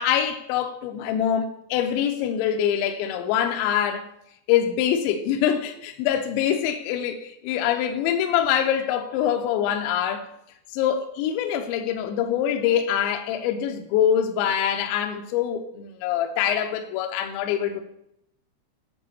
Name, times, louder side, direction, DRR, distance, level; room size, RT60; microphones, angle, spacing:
voice 1, 0.0-4.1 4.5-10.2 10.7-17.8, left 9 dB, 80° left, 5 dB, 2.9 m, -24 dB
9.2 x 4.1 x 7.1 m, 0.79 s
omnidirectional pair, 5.4 m